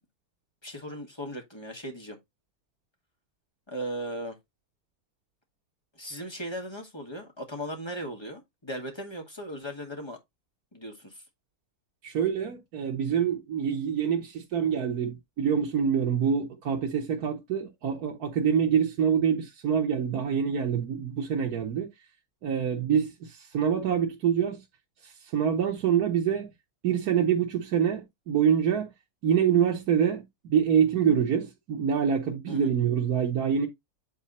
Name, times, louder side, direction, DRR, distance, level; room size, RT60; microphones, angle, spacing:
voice 1, 0.6-2.2 3.7-4.4 6.0-10.2 10.7-11.2 32.5-32.7, equal, 15° left, 2.3 m, -37 dB
voice 2, 12.0-21.9 22.4-24.6 25.0-26.5 26.8-28.9 29.2-33.7, right 8 dB, 80° right, 1.7 m, -26 dB
8.9 x 4.1 x 4.2 m
omnidirectional pair, 1.6 m